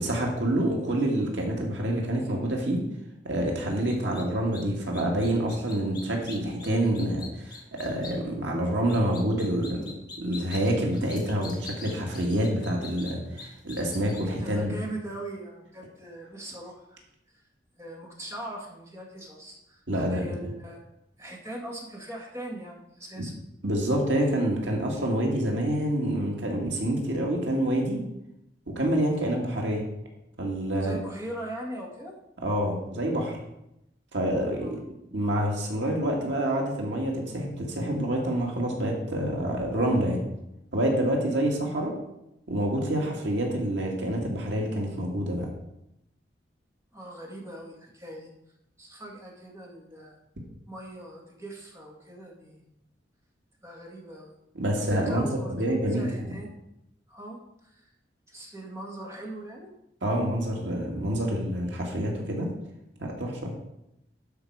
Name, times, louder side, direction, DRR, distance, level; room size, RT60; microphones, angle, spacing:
voice 1, 0.0-2.9 3.2-9.9 10.2-14.7 19.9-20.3 23.2-23.3 23.6-28.0 28.7-29.8 30.4-31.0 32.4-33.4 34.1-34.8 35.1-40.2 40.7-41.9 42.5-45.5 54.6-56.3 60.0-62.5 63.0-63.5, right 1 dB, 85° right, 0 dB, 2.1 m, -27 dB
sound 1, 3.9-4.2 4.5-4.6 4.9-8.2 8.9-14.2, left 4 dB, 25° left, 1.6 m, -43 dB
voice 2, 14.2-17.0 17.3-17.4 17.8-20.8 21.2-23.3 30.7-32.1 34.6-34.8 46.9-48.3 48.8-50.2 50.7-52.7 53.6-54.3 54.8-56.6 57.1-57.9 58.3-59.7, right 1 dB, 15° right, -2 dB, 2.1 m, -40 dB
11.5 x 5.4 x 4.8 m, 0.85 s
head